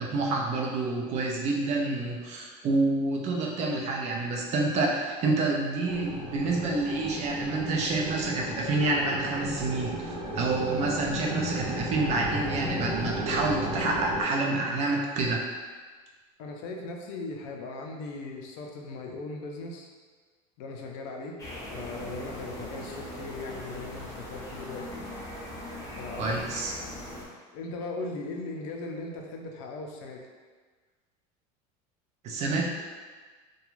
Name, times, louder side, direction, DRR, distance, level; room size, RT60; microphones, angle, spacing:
voice 1, 0.0-15.4 26.2-26.7 32.2-32.6, right 3 dB, 40° right, -2 dB, 0.5 m, -28 dB
sound 1, 5.8-14.2, equal, 90° right, 0.9 m, -34 dB
voice 2, 16.4-19.9 20.6-21.4 21.7-25.0 26.0-26.4 27.5-30.3, left 3 dB, 70° left, 1 dB, 0.5 m, -38 dB
sound 2, 21.4-27.3, left 1 dB, 20° left, 0.7 m, -40 dB
2.4 x 2.2 x 3.0 m, 1.5 s
supercardioid pair, 140°, 18 cm